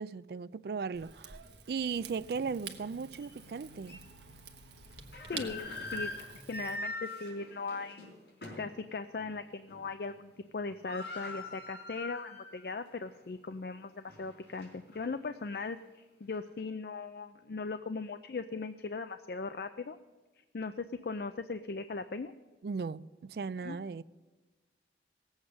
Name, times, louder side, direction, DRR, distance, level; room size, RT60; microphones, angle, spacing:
voice 1, 0.0-1.4 1.7-4.0 22.6-24.0, right 5 dB, 60° right, 0.4 m, -37 dB
Rain / Fire, 0.9-6.8, right 6 dB, 75° right, 1.2 m, -48 dB
sound 1, 3.2-3.3 3.9-4.0 4.9-8.8 9.2-9.3 9.7-10.1 10.4-10.5 10.6-12.6 13.0-13.1 13.7-15.1, left 2 dB, 75° left, 4.5 m, -42 dB
voice 2, 5.3-8.1 8.6-20.0 20.5-22.3 23.6-23.8, left 4 dB, 55° left, 0.4 m, -39 dB
17.5 x 8.0 x 6.3 m
head